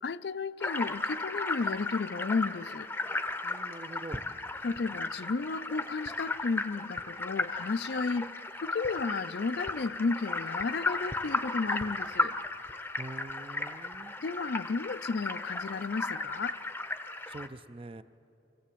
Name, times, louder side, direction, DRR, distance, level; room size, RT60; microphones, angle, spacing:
voice 1, 0.0-2.9 4.6-12.4 13.7-13.8 14.2-16.6, left 4 dB, 70° left, 0.5 m, -33 dB
sound 1, 0.6-17.5, left 2 dB, 10° left, 0.7 m, -35 dB
voice 2, 3.4-4.2 13.0-14.2 17.3-18.0, right 2 dB, 30° right, 0.5 m, -44 dB
24.5 x 16.0 x 8.5 m
head